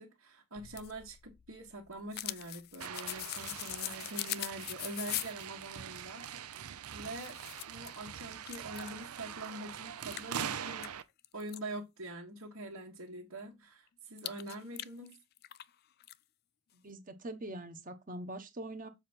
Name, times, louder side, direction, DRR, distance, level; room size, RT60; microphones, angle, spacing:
voice 1, 0.0-7.4 7.7-10.9 11.3-15.2, right 1 dB, 70° right, 1.8 m, -45 dB
sound 1, 0.6-5.5 6.7-6.8 7.1-8.0 8.4-9.0 9.5-9.6 10.1-11.6 14.2-15.7 16.0-16.1, left 15 dB, 45° left, 0.3 m, -41 dB
sound 2, 2.8-11.0, right 8 dB, 90° right, 0.6 m, -43 dB
voice 2, 16.7-18.9, right 1 dB, 40° right, 1.2 m, -43 dB
7.4 x 5.0 x 4.5 m
head